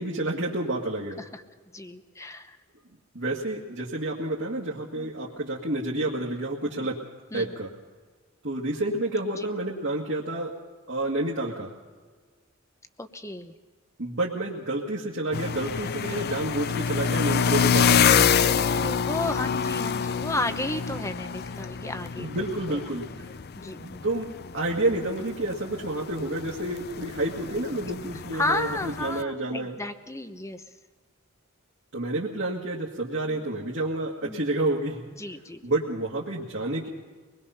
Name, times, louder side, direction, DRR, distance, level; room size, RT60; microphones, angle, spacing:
voice 1, 0.0-1.2 3.1-7.0 7.3-7.7 8.4-10.5 10.9-11.7 14.0-18.1 22.2-23.1 23.8-24.3 24.5-29.8 31.9-35.0 35.6-36.9, right 2 dB, 60° right, -4 dB, 2.0 m, -29 dB
voice 2, 1.7-2.6 4.9-5.1 6.6-6.9 7.3-7.5 9.3-9.5 13.0-13.5 18.4-22.3 22.7-22.8 23.6-24.1 28.3-30.6 34.2-34.5 35.2-35.6, left 2 dB, 15° left, 9 dB, 1.0 m, -33 dB
sound 1, 15.3-29.2, left 7 dB, 50° left, 0.5 m, -27 dB
24.0 x 20.5 x 5.7 m, 1.5 s
head